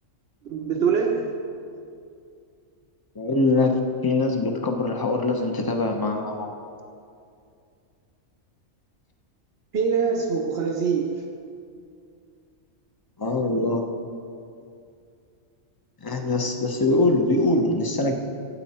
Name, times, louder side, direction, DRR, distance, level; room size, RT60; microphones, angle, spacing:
voice 1, 0.4-1.4 9.7-11.3, right 6 dB, 60° right, -1 dB, 1.0 m, -24 dB
voice 2, 3.2-3.7 4.0-6.5 13.2-13.9 16.0-18.1, left 2 dB, 20° left, 3 dB, 0.8 m, -23 dB
15.0 x 8.8 x 4.3 m, 2.4 s
omnidirectional pair, 1.3 m